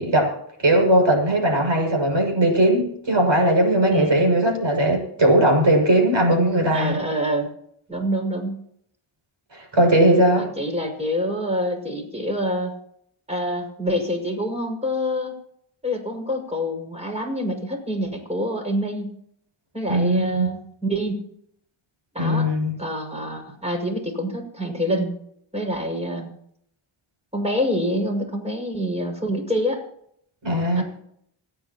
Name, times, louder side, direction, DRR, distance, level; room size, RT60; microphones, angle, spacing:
voice 1, 0.0-7.0 9.5-10.5 19.9-20.5 22.2-22.7 30.4-30.8, right 1 dB, 60° right, 2 dB, 6.7 m, -19 dB
voice 2, 3.9-4.2 6.7-7.5 7.9-8.6 10.4-12.7 13.3-15.3 15.8-19.1 19.7-21.1 22.1-22.5 22.8-25.1 25.5-26.3 27.3-29.8 30.8-30.9, equal, 15° right, 2 dB, 6.2 m, -26 dB
27.0 x 9.9 x 3.0 m, 0.71 s
cardioid pair, 55°, 49 cm